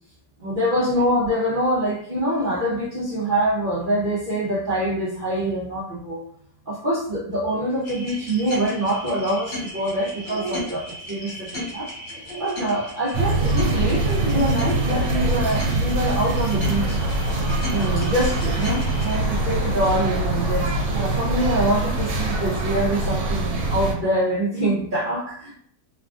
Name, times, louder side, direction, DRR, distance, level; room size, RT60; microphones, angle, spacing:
voice 1, 0.4-6.2 6.7-11.9 12.4-17.0 17.7-25.6, right 1 dB, 50° right, -9 dB, 0.6 m, -25 dB
sound 1, 7.8-19.2, left 1 dB, 60° left, 1.4 m, -35 dB
sound 2, 13.1-23.9, right 2 dB, 80° right, 1.2 m, -23 dB
sound 3, 16.6-23.1, left 2 dB, 75° left, 1.2 m, -37 dB
3.1 x 2.3 x 2.4 m, 0.63 s
omnidirectional pair, 1.9 m